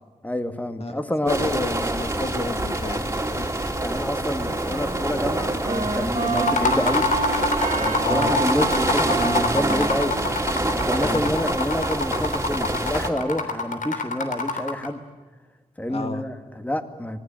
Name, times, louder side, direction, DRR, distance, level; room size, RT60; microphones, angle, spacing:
voice 1, 0.2-1.4 3.8-7.1 7.8-10.2 10.7-15.0 15.8-17.2, left 1 dB, 10° left, 7 dB, 2.2 m, -27 dB
voice 2, 1.3-3.6 8.0-8.4 11.0-11.4 15.9-16.2, left 3 dB, 50° left, 7 dB, 1.9 m, -31 dB
sound 1, 1.3-13.1, right 1 dB, 20° right, 3.1 m, -26 dB
Wind instrument woodwind instrument, 4.2-11.3, right 3 dB, 65° right, 3.0 m, -30 dB
sound 2, 6.4-14.9, left 3 dB, 85° left, 3.3 m, -26 dB
26.5 x 20.0 x 9.1 m, 1.3 s
wide cardioid pair, 90°, 13 cm